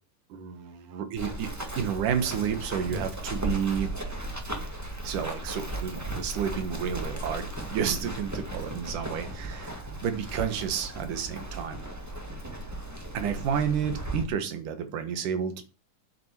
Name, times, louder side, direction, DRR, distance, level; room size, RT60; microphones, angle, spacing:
voice 1, 0.3-1.5 1.8-4.1 5.0-7.4 7.7-11.8 13.1-15.6, right 8 dB, 80° right, 8 dB, 3.1 m, -31 dB
Run, 1.2-14.2, right 1 dB, 20° right, 0.4 m, -36 dB
8.9 x 7.7 x 7.4 m, 0.33 s
omnidirectional pair, 3.6 m